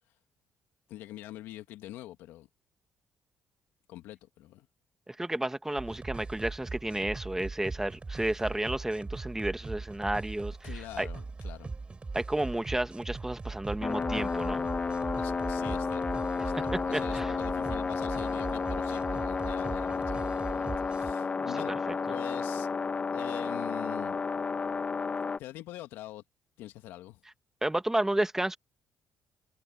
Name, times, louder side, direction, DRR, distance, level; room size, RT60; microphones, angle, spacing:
voice 1, 0.9-2.5 3.9-4.7 10.6-11.7 15.2-21.8 22.1-22.7 23.1-24.2 25.2-26.2 26.6-27.2, left 15 dB, 80° left, 1.9 m, -44 dB
voice 2, 5.1-10.6 11.0-11.1 12.1-14.6 16.9-17.3 21.4-21.5 21.9-22.0 27.6-28.6, right 1 dB, 10° right, 2.0 m, -31 dB
sound 1, 5.8-21.1, right 3 dB, 30° right, 5.8 m, -40 dB
sound 2, 13.8-25.4, left 5 dB, 40° left, 1.6 m, -32 dB
supercardioid pair, 55°, 4 cm